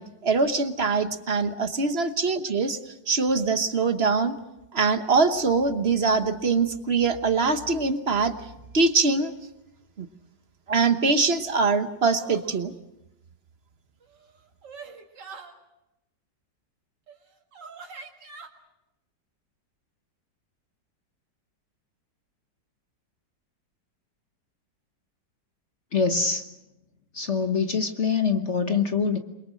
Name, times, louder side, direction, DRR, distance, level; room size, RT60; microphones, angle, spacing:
voice 1, 0.0-2.8 3.1-4.4 4.7-8.3 8.7-9.3 10.0-10.1 10.7-12.7, right 4 dB, 40° right, 9 dB, 1.2 m, -23 dB
sound 1, 12.2-12.6 14.0-15.5 17.1-17.2 17.5-18.5, right 5 dB, 70° right, 2.7 m, -44 dB
voice 2, 25.9-26.4 27.1-29.2, left 5 dB, 45° left, 7 dB, 1.3 m, -24 dB
28.0 x 23.0 x 6.4 m, 0.92 s
omnidirectional pair, 1.9 m